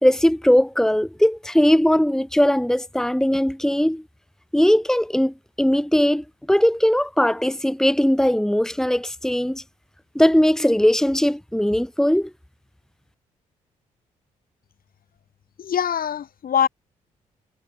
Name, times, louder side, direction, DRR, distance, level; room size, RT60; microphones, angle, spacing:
voice 1, 0.0-4.0 4.5-9.6 10.2-12.3, equal, 5° left, 2.0 m, -19 dB
voice 2, 15.6-16.7, left 8 dB, 60° left, 4.9 m, -23 dB
hypercardioid pair, 45°, 17 cm